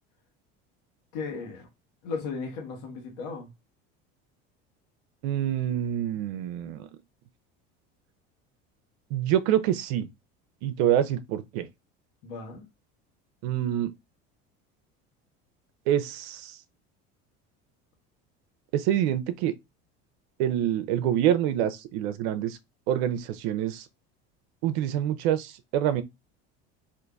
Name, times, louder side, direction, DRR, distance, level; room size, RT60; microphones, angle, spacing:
voice 1, 1.1-1.7 2.0-3.5 12.2-12.7, left 4 dB, 70° left, 1.1 m, -35 dB
voice 2, 5.2-6.9 9.1-10.1 10.6-11.7 13.4-13.9 15.9-16.6 18.7-19.5 20.4-22.6 22.9-23.9 24.6-26.0, right 11 dB, 75° right, 0.5 m, -26 dB
3.8 x 2.5 x 2.3 m
supercardioid pair, 100°, 32 cm